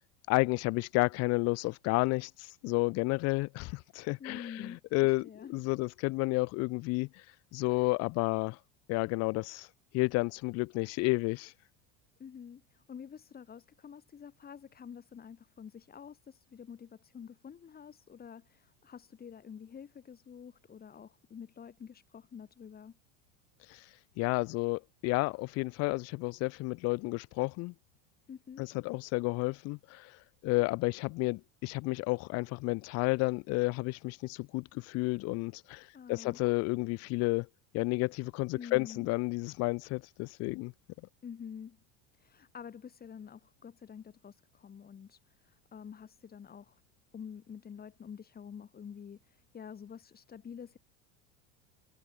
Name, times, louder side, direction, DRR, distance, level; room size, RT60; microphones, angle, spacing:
voice 1, 0.3-7.2 7.5-8.6 8.9-9.7 9.9-11.5 23.7-23.8 24.2-27.7 28.6-30.2 30.4-37.5 37.7-40.7, left 24 dB, 45° left, 0.4 m, -31 dB
voice 2, 4.2-5.6 12.2-23.0 28.3-28.7 35.9-36.4 38.5-39.1 41.2-41.8 42.1-46.8 47.1-50.8, left 7 dB, 25° left, 2.4 m, -48 dB
supercardioid pair, 120°, 37 cm